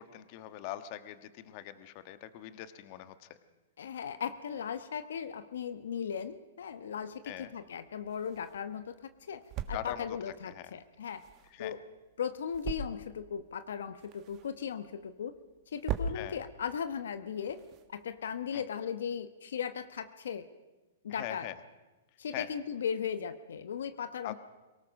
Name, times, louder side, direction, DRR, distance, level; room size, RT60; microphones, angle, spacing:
voice 1, 0.0-3.3 7.3-7.5 9.7-10.0 10.5-10.7 11.5-11.7 16.1-16.4 18.5-18.6 21.1-21.5 22.3-22.5 24.2-24.3, left 13 dB, 40° left, 11 dB, 1.4 m, -42 dB
voice 2, 3.8-11.2 11.6-11.8 12.2-15.4 15.7-17.6 17.9-20.5 21.0-21.5 22.2-24.3, left 7 dB, 80° left, 11 dB, 1.0 m, -37 dB
sound 1, 7.3-18.5, right 5 dB, 35° right, 1.7 m, -43 dB
23.5 x 18.0 x 6.4 m, 1.1 s
hypercardioid pair, 140°, 0 cm